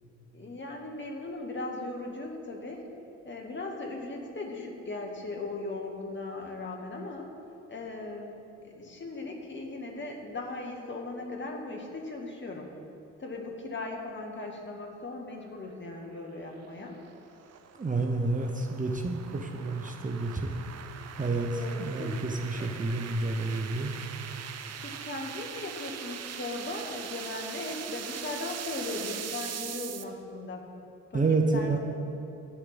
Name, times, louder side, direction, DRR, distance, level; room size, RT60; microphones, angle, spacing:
voice 1, 0.3-2.9 3.2-7.3 7.7-12.7 13.2-17.0 21.5-22.1 22.6-22.7 24.8-30.6 31.1-31.8, left 2 dB, 30° left, 1 dB, 2.0 m, -38 dB
sound 1, 16.1-30.0, right 8 dB, 40° right, 0.8 m, -41 dB
voice 2, 17.8-20.6 21.2-23.9 31.1-31.8, right 3 dB, 20° right, 3 dB, 1.0 m, -29 dB
11.5 x 5.0 x 8.6 m, 2.9 s
hypercardioid pair, 55°, 38 cm